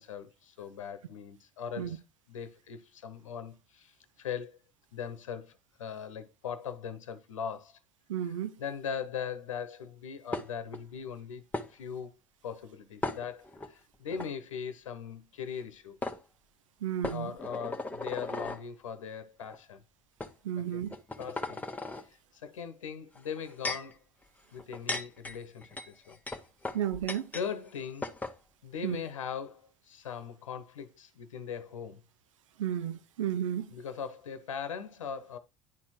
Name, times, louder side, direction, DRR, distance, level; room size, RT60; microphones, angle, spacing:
voice 1, 0.0-2.0 2.3-4.5 4.9-7.8 8.2-8.3 8.6-11.4 11.7-12.1 12.4-16.0 17.1-19.8 20.6-20.9 21.2-21.6 22.0-24.0 24.5-26.2 27.3-28.1 28.6-32.0 33.7-35.4, left 7 dB, 80° left, 1.0 m, -40 dB
voice 2, 8.1-8.5 16.8-17.3 20.4-20.9 26.7-27.3 28.8-29.0 32.6-33.7, right 10 dB, 80° right, 0.6 m, -32 dB
sound 1, 10.3-10.8 11.5-11.7 13.0-13.7 14.1-14.3 15.6-15.7 16.0-16.2 17.0-18.6 19.4-19.6 20.2-20.3 20.9-22.0 23.1-23.9 24.6-27.5 27.7-27.8 28.0-28.4, left 2 dB, 10° left, 1.3 m, -37 dB
10.5 x 4.4 x 4.4 m
hypercardioid pair, 65°, 16 cm